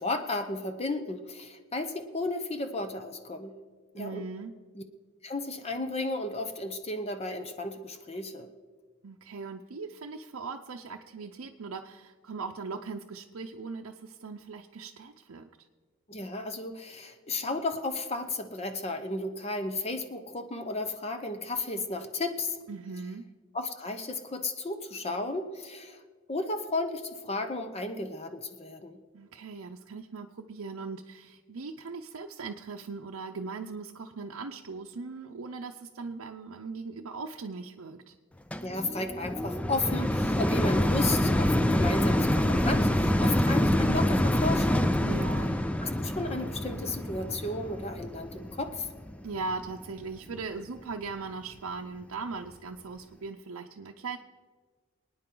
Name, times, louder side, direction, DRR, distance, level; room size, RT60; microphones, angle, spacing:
voice 1, 0.0-3.5 3.9-4.2 4.7-4.8 5.2-8.5 16.1-22.6 23.5-26.0 26.3-29.0 38.6-44.9 45.8-48.9, left 2 dB, 30° left, 7 dB, 0.8 m, -34 dB
voice 2, 4.0-4.5 9.0-15.4 22.7-23.2 29.1-38.1 45.0-45.6 49.2-54.2, right 4 dB, 80° right, 2 dB, 0.6 m, -39 dB
sound 1, 38.5-49.8 50.4-50.5, left 1 dB, 5° left, 0.4 m, -26 dB
24.5 x 9.5 x 3.8 m, 1.5 s
head